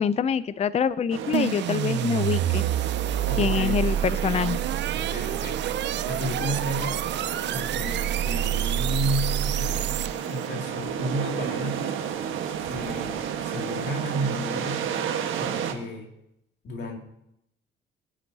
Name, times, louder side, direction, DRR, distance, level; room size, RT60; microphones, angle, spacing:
voice 1, 0.0-2.7 3.4-4.6, left 7 dB, 35° left, 16 dB, 0.4 m, -25 dB
sound 1, 1.1-15.7, right 8 dB, 85° right, 1.4 m, -32 dB
sound 2, 1.3-10.4, right 12 dB, 65° right, 0.4 m, -28 dB
voice 2, 3.3-3.9 4.9-7.1 7.4-11.9 12.6-14.9 15.4-16.1 16.6-17.0, equal, 65° left, 2 dB, 2.4 m, -32 dB
22.0 x 10.0 x 2.8 m, 0.78 s
cardioid pair, 90°, 20 cm